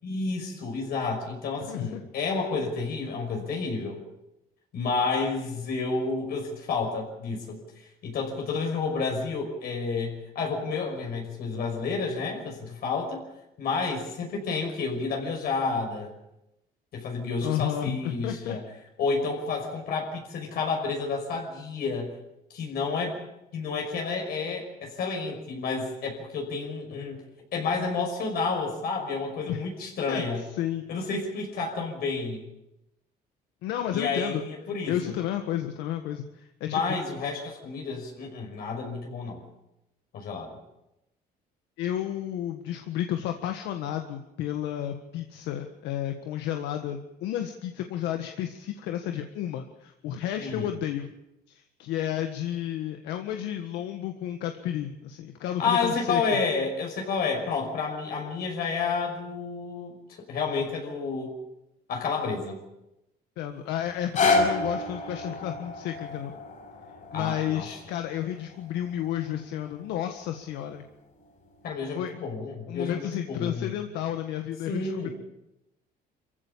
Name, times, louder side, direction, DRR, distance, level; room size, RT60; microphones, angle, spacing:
voice 1, 0.0-4.0 4.7-7.6 8.0-13.2 13.6-16.1 16.9-18.6 19.0-22.1 22.5-23.2 23.5-27.2 27.5-30.4 30.9-32.4 33.9-35.0 36.6-39.4 40.1-40.6 50.4-50.8 55.6-60.0 60.3-61.4 61.9-62.6 67.1-67.7 71.6-73.7 74.7-75.1, left 4 dB, 65° left, 1 dB, 5.8 m, -30 dB
voice 2, 1.6-2.0 17.4-18.6 29.5-29.6 30.1-30.2 30.5-30.8 33.6-34.4 34.9-36.8 41.8-51.1 51.5-56.4 63.4-66.3 67.1-70.8 71.9-72.1 72.7-75.1, left 11 dB, 90° left, 6 dB, 1.6 m, -32 dB
sound 1, 63.9-70.0 70.6-70.7, left 3 dB, 45° left, 7.9 m, -30 dB
25.5 x 15.5 x 8.6 m, 0.89 s
cardioid pair, 110°, 17 cm